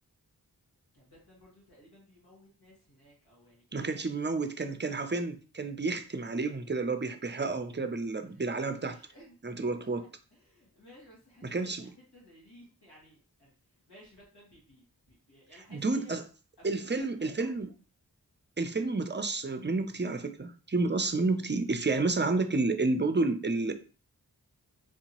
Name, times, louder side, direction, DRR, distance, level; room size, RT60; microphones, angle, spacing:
voice 1, 0.9-4.6 8.3-8.4 8.7-9.4 9.7-13.5 13.9-16.1 16.6-17.5, equal, 80° left, 1.9 m, -57 dB
voice 2, 3.7-9.0 9.4-10.0 11.4-11.8 15.7-16.2 16.6-17.7 18.6-23.7, right 3 dB, 30° right, 0.5 m, -30 dB
4.6 x 2.8 x 2.9 m
wide cardioid pair, 50°, 38 cm